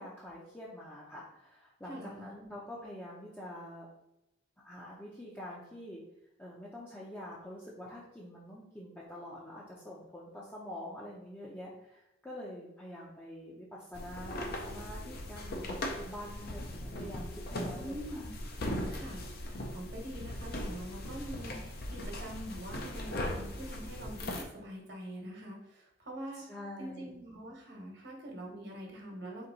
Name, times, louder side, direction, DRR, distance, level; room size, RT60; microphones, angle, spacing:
voice 1, 0.0-3.9 4.6-6.0 6.4-15.6 15.9-18.2 26.3-27.2, left 1 dB, 10° left, -6 dB, 0.6 m, -46 dB
voice 2, 1.9-2.3 17.7-18.3 18.9-26.4 26.8-29.5, right 1 dB, 60° right, -1 dB, 1.2 m, -44 dB
sound 1, 13.9-24.4, left 1 dB, 55° left, 0.6 m, -39 dB
4.4 x 2.8 x 3.9 m, 0.89 s
head